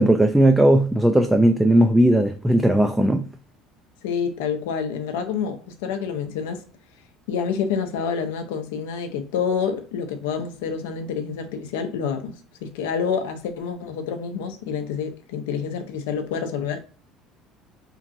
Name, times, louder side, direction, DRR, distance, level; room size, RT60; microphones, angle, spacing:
voice 1, 0.0-3.3, right 1 dB, 5° right, 0.3 m, -17 dB
voice 2, 4.0-6.6 7.3-12.4 12.6-16.8, left 6 dB, 85° left, 0.5 m, -28 dB
2.9 x 2.4 x 2.5 m
supercardioid pair, 95°, 0 cm